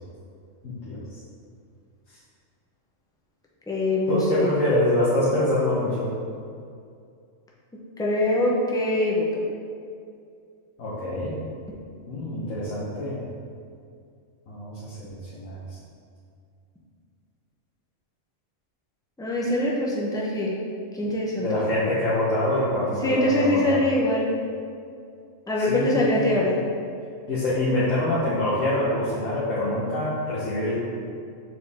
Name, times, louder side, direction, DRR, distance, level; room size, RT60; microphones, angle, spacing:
voice 1, 0.6-1.0 4.1-6.1 10.8-11.3 12.1-13.2 14.5-15.8 21.4-23.8 25.6-26.4 27.3-30.8, left 1 dB, 80° left, -9 dB, 1.4 m, -25 dB
voice 2, 3.7-4.5 8.0-9.3 19.2-20.6 20.9-21.5 23.0-24.3 25.5-26.6, left 1 dB, 5° left, -4 dB, 0.6 m, -23 dB
6.4 x 4.6 x 3.5 m, 2.3 s
omnidirectional pair, 1.3 m